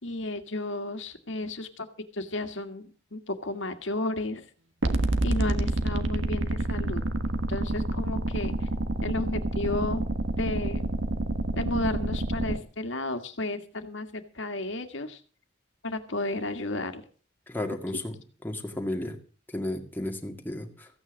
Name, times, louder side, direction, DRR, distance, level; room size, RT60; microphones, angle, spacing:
voice 1, 0.0-1.9 2.1-4.5 5.2-7.0 7.5-8.7 9.0-10.0 10.4-10.9 11.5-15.2 15.8-17.0, left 2 dB, 85° left, 7 dB, 1.9 m, -33 dB
sound 1, 4.8-12.6, right 2 dB, 90° right, 1.4 m, -28 dB
voice 2, 17.5-18.2 18.4-19.2 19.5-20.9, left 1 dB, 10° left, 3 dB, 1.9 m, -33 dB
15.5 x 9.0 x 6.4 m, 0.40 s
head